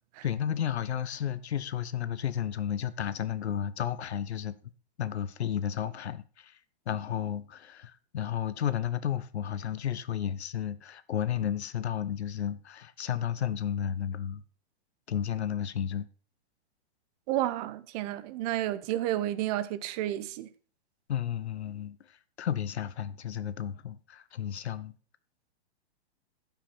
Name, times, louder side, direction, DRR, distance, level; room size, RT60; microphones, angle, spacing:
voice 1, 0.2-4.6 5.0-6.6 6.9-14.4 15.1-16.1 21.1-24.9, left 9 dB, 85° left, 0.9 m, -32 dB
voice 2, 17.3-20.5, right 13 dB, 35° right, 0.8 m, -31 dB
11.5 x 5.8 x 5.6 m
hypercardioid pair, 135°, 32 cm